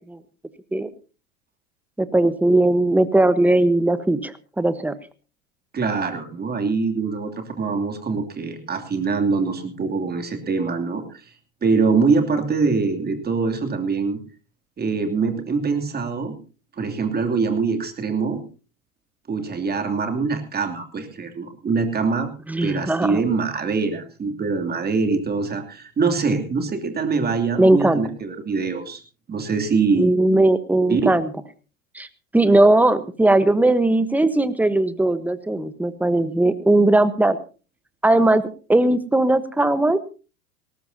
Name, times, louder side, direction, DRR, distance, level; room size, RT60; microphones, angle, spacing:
voice 1, 2.0-4.9 22.5-23.2 27.6-28.0 30.0-31.3 31.9-32.1 32.3-37.4 38.0-40.0, right 2 dB, 5° right, 14 dB, 1.1 m, -18 dB
voice 2, 5.7-11.2 11.6-14.2 14.8-16.3 16.8-18.4 19.3-22.3 22.6-29.0 29.3-30.1 30.9-31.1, right 4 dB, 25° right, 5 dB, 2.9 m, -23 dB
19.5 x 18.0 x 2.8 m, 0.35 s
hypercardioid pair, 90°, 41 cm